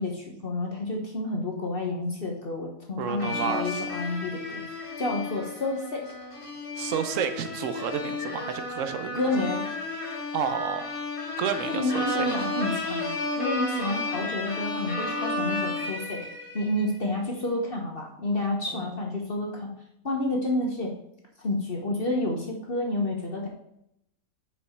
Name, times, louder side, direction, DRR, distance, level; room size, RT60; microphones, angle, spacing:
voice 1, 0.0-6.0 9.1-9.6 11.6-13.1 13.3-16.2 16.5-19.7 20.0-20.9 21.4-23.5, left 2 dB, 45° left, 0 dB, 1.2 m, -29 dB
voice 2, 3.0-3.8 6.7-9.2 10.3-10.9 11.4-12.3, right 7 dB, 65° right, 9 dB, 1.1 m, -30 dB
sound 1, 3.2-16.9, left 2 dB, 25° left, 1.1 m, -33 dB
6.7 x 5.3 x 4.4 m, 0.77 s
omnidirectional pair, 1.5 m